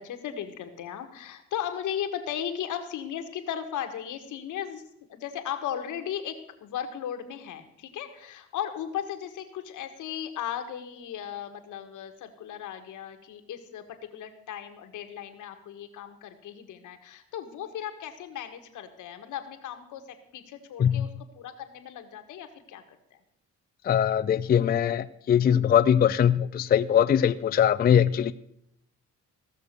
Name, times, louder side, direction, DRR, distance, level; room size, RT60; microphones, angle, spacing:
voice 1, 0.0-4.8 5.1-23.0, left 9 dB, 80° left, 7 dB, 1.5 m, -36 dB
voice 2, 23.8-28.3, left 9 dB, 30° left, 12 dB, 0.4 m, -22 dB
16.0 x 6.5 x 6.6 m, 0.77 s
cardioid pair, 90°, 30 cm